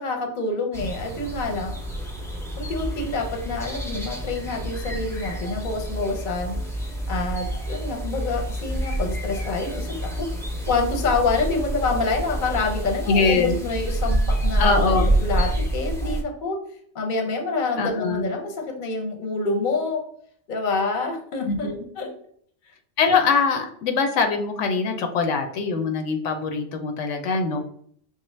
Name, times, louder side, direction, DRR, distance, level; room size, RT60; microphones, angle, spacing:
voice 1, 0.0-1.8 2.6-6.6 7.1-10.3 10.7-16.6 16.9-20.0 20.5-21.7 22.0-22.1, left 3 dB, 50° left, 3 dB, 0.8 m, -27 dB
sound 1, 0.7-16.2, right 1 dB, 5° left, 0.4 m, -28 dB
voice 2, 13.1-13.6 14.6-15.1 17.8-18.3 21.4-21.8 23.0-27.6, left 4 dB, 80° left, 5 dB, 0.9 m, -22 dB
5.3 x 2.1 x 3.1 m, 0.62 s
omnidirectional pair, 1.3 m